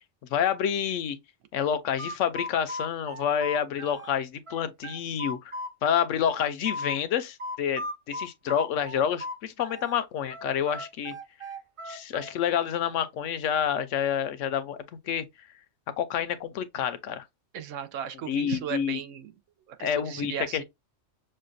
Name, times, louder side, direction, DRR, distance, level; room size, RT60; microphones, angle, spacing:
voice 1, 0.3-1.2 1.5-5.5 5.8-11.1 11.9-14.8 15.1-15.2 16.0-17.2 18.3-19.0 19.8-20.6, left 8 dB, 80° left, 0.9 m, -28 dB
sound 1, 1.6-4.1 4.5-7.0 7.4-10.0 10.3-12.9, left 1 dB, 35° right, 0.5 m, -37 dB
voice 2, 17.5-19.3 19.7-20.6, right 9 dB, 90° right, 1.0 m, -36 dB
6.4 x 2.2 x 2.5 m
omnidirectional pair, 1.3 m